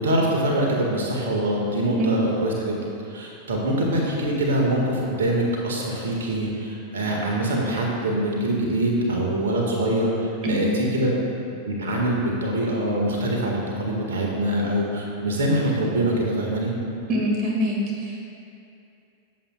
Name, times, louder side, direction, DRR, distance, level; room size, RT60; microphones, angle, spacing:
voice 1, 0.0-2.8 3.1-11.2 11.6-16.7, right 1 dB, 65° right, -1 dB, 1.9 m, -24 dB
voice 2, 17.1-18.2, equal, 35° right, -2 dB, 2.2 m, -24 dB
22.0 x 7.7 x 2.5 m, 2.6 s
figure-of-eight pair, 90°, 0 cm